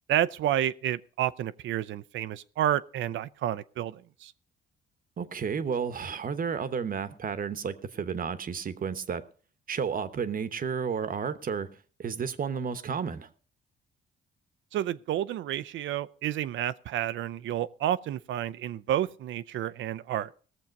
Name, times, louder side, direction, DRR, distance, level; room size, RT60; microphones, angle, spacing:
voice 1, 0.1-4.3 14.7-20.3, right 11 dB, 75° right, 0.5 m, -30 dB
voice 2, 5.2-9.2 9.7-11.7 12.0-13.3, right 6 dB, 45° right, 1.0 m, -32 dB
18.0 x 7.2 x 5.2 m
cardioid pair, 90°, 20 cm